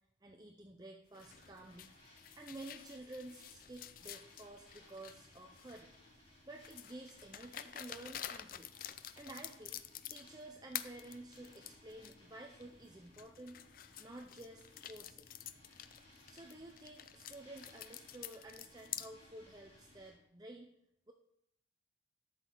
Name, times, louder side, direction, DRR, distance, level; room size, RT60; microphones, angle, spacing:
voice 1, 0.2-1.9 2.4-5.9 6.5-8.7 9.1-9.8 10.1-13.6 14.0-15.3 16.2-20.7 21.1-21.2, right 2 dB, 20° right, 2 dB, 0.6 m, -52 dB
sound 1, 1.1-6.0 6.6-10.4 10.7-12.1 12.6-12.7 13.1-19.1, left 11 dB, 45° left, 0.4 m, -49 dB
sound 2, 1.1-20.1, left 1 dB, 30° left, 4.2 m, -63 dB
12.5 x 6.2 x 3.9 m, 0.78 s
head